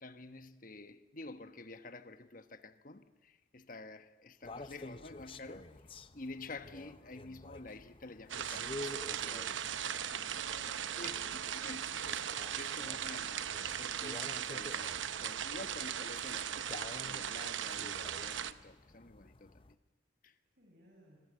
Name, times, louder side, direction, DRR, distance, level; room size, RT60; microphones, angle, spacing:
voice 1, 0.0-5.8 6.1-10.0 11.0-12.3 12.6-19.6 20.2-20.4, left 2 dB, 45° left, 1.2 m, -50 dB
sound 1, 4.4-19.7, left 2 dB, 30° left, 0.7 m, -51 dB
sound 2, 8.3-18.5, right 9 dB, 80° right, 0.9 m, -38 dB
voice 2, 9.9-12.2 13.2-13.6 20.6-21.2, right 1 dB, 50° right, 5.8 m, -59 dB
26.5 x 23.5 x 8.1 m
head